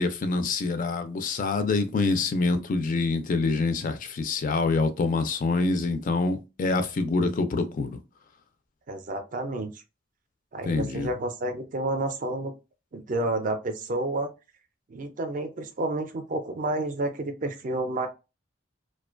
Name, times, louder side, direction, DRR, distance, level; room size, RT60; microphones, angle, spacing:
voice 1, 0.0-8.0 10.6-11.1, left 3 dB, 40° left, 0.3 m, -26 dB
voice 2, 8.9-9.7 10.5-12.5 12.9-14.3 14.9-18.1, right 2 dB, 40° right, 0.4 m, -30 dB
2.4 x 2.2 x 2.4 m
head